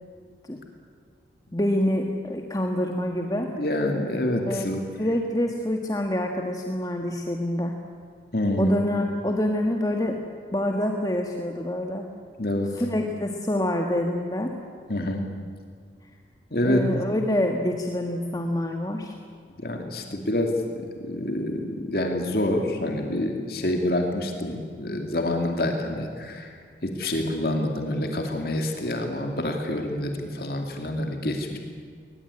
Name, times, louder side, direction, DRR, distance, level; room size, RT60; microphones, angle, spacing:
voice 1, 1.5-3.5 4.5-4.7 5.0-7.8 8.6-10.2 10.5-12.1 12.7-14.5 16.6-19.2, left 1 dB, 20° left, 3 dB, 1.4 m, -26 dB
voice 2, 3.5-4.8 8.3-8.8 12.4-12.7 14.9-15.3 16.5-16.8 19.6-20.5 21.0-26.6 26.8-31.6, left 1 dB, 55° left, 3 dB, 2.4 m, -27 dB
21.5 x 20.0 x 9.7 m, 2.1 s
head